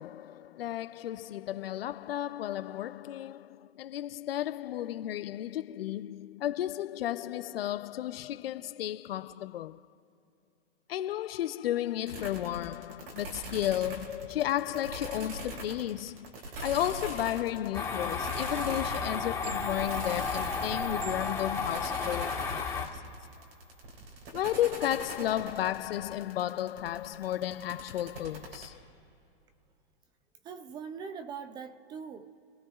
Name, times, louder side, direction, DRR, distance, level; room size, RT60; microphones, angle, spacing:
voice 1, 0.0-9.8 10.9-22.9 24.3-28.8, left 12 dB, 80° left, 0.6 m, -33 dB
sound 1, 12.1-28.7, right 2 dB, 75° right, 4.6 m, -42 dB
sound 2, 17.7-22.9, left 5 dB, 10° left, 1.5 m, -33 dB
voice 2, 30.4-32.4, right 6 dB, 15° right, 0.4 m, -42 dB
29.0 x 17.5 x 2.4 m
hypercardioid pair, 145°, 30 cm